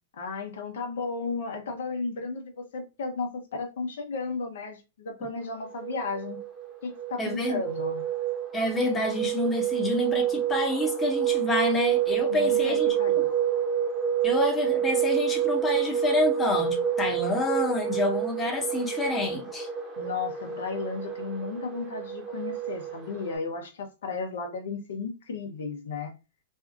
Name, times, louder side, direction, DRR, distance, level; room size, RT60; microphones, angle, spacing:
voice 1, 0.2-6.4 6.8-8.0 12.3-13.3 20.0-26.1, left 4 dB, 70° left, 0.7 m, -34 dB
sound 1, 5.6-23.4, right 9 dB, 20° right, 0.9 m, -28 dB
voice 2, 7.2-7.6 8.5-12.9 14.2-19.7, left 2 dB, 20° left, 0.8 m, -28 dB
2.6 x 2.3 x 2.5 m
hypercardioid pair, 105°, 0 cm